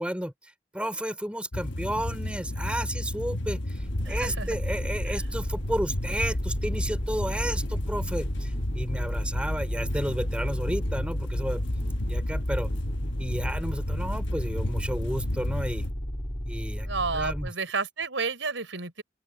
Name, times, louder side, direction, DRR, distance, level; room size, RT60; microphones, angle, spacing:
voice 1, 0.0-11.6 12.1-12.7 13.2-15.9 16.5-16.9 17.1-17.5, right 1 dB, 5° right, 5.2 m, -32 dB
sound 1, 1.5-15.9, left 1 dB, 70° left, 1.2 m, -33 dB
sound 2, 3.8-17.5, equal, 35° left, 3.5 m, -33 dB
voice 2, 4.1-4.6 5.1-5.2 16.8-19.0, right 4 dB, 80° right, 4.6 m, -31 dB
open air
head